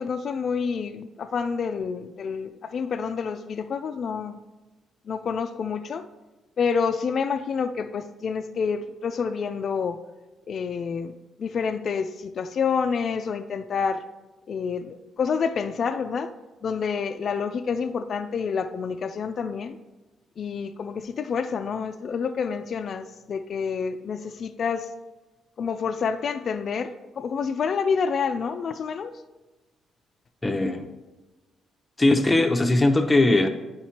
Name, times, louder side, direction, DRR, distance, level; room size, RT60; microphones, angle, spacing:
voice 1, 0.0-4.4 5.1-6.1 6.6-10.0 10.5-14.0 14.5-16.3 16.6-19.8 20.4-24.9 25.6-29.2, left 6 dB, 55° left, 9 dB, 0.3 m, -28 dB
voice 2, 30.4-30.9 32.0-33.5, left 2 dB, 15° left, 6 dB, 0.7 m, -20 dB
9.0 x 5.1 x 2.8 m, 1.1 s
cardioid pair, 90°, 0 cm